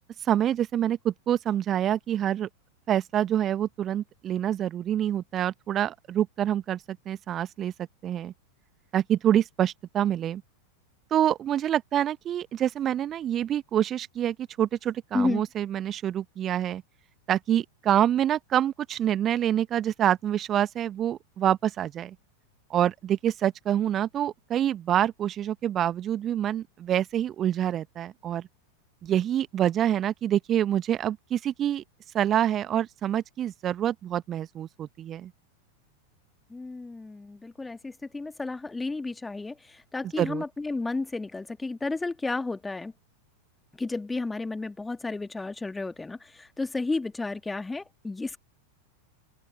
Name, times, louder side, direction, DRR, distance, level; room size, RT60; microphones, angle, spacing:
voice 1, 0.2-2.5 2.9-7.7 8.0-8.3 8.9-10.4 11.1-16.8 17.3-22.1 22.7-28.4 29.0-31.8 32.1-35.3 40.2-40.4, right 10 dB, 30° right, 1.1 m, -26 dB
voice 2, 36.5-42.9 43.8-48.4, left 3 dB, 10° left, 2.0 m, -32 dB
open air
figure-of-eight pair, 90°, 0 cm